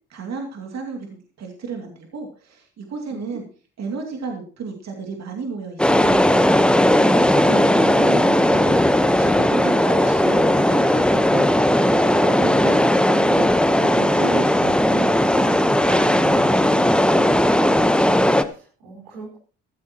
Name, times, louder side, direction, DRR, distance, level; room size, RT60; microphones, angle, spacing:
voice 1, 0.1-3.4 3.8-6.2 6.8-8.8 9.2-15.6 15.9-17.6, right 4 dB, 55° right, 2 dB, 2.6 m, -33 dB
voice 2, 3.1-3.4 6.7-7.2 18.3-19.4, right 2 dB, 90° right, -1 dB, 4.9 m, -40 dB
sound 1, 5.8-18.4, left 1 dB, 5° left, 1.0 m, -17 dB
15.0 x 13.5 x 3.0 m, 0.38 s
hypercardioid pair, 55°, 32 cm